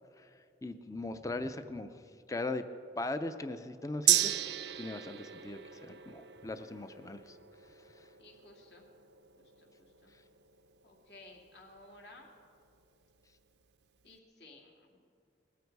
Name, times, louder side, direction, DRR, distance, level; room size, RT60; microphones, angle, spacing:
voice 1, 0.6-1.9 2.3-2.7 3.0-4.4 4.8-7.4, left 2 dB, 20° left, 10 dB, 0.5 m, -39 dB
Gong, 4.1-11.8 12.2-12.3, right 13 dB, 70° right, 0.5 m, -35 dB
voice 2, 8.2-8.9 9.4-10.1 10.8-12.3 14.0-15.0, left 2 dB, 65° left, 0 dB, 2.5 m, -56 dB
20.0 x 13.5 x 4.7 m, 2.4 s
head